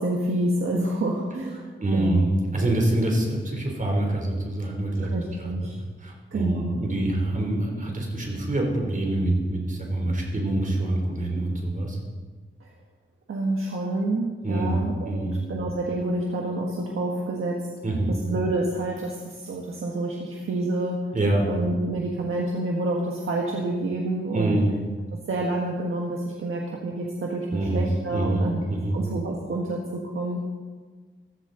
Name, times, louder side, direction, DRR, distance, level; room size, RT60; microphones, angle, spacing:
voice 1, 0.0-2.3 5.0-5.8 6.3-6.8 12.6-12.7 13.3-17.7 18.1-21.0 21.5-24.6 25.3-28.6 28.9-30.4, right 2 dB, 90° right, -1 dB, 1.6 m, -28 dB
voice 2, 1.8-5.1 5.4-5.5 6.0-12.0 14.4-15.4 17.8-18.2 21.1-21.5 24.3-24.7 27.5-29.0, right 1 dB, 40° right, 0 dB, 3.4 m, -25 dB
15.0 x 14.0 x 4.0 m, 1.4 s
wide cardioid pair, 110°, 21 cm